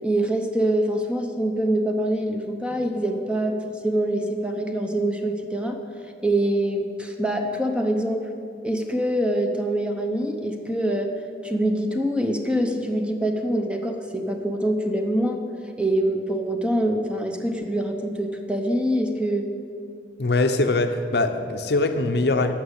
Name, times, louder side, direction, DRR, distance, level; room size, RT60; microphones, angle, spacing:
voice 1, 0.0-3.6 3.8-5.8 6.2-8.3 8.6-11.1 11.4-15.4 15.8-19.5, right 1 dB, 5° right, 4 dB, 0.8 m, -24 dB
voice 2, 20.2-22.5, left 2 dB, 65° left, 7 dB, 0.7 m, -22 dB
11.5 x 6.2 x 8.1 m, 2.4 s
head